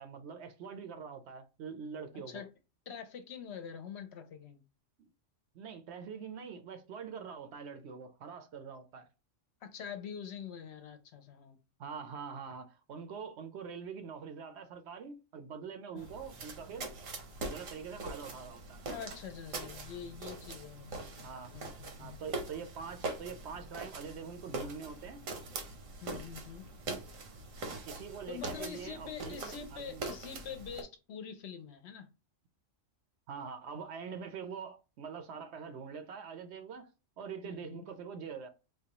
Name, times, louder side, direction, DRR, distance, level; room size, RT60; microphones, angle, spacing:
voice 1, 0.0-2.4 5.0-5.1 5.5-9.1 11.8-16.9 17.4-18.9 21.2-21.5 22.0-25.2 27.8-30.0 33.3-36.9 37.2-38.5, right 6 dB, 65° right, 0.8 m, -44 dB
voice 2, 2.9-4.6 9.6-11.6 15.9-16.1 18.9-22.2 26.0-26.6 28.3-32.1 37.4-37.8, left 7 dB, 65° left, 0.8 m, -45 dB
sound 1, 16.0-30.8, right 3 dB, 90° right, 1.3 m, -43 dB
4.7 x 2.3 x 2.8 m
omnidirectional pair, 1.3 m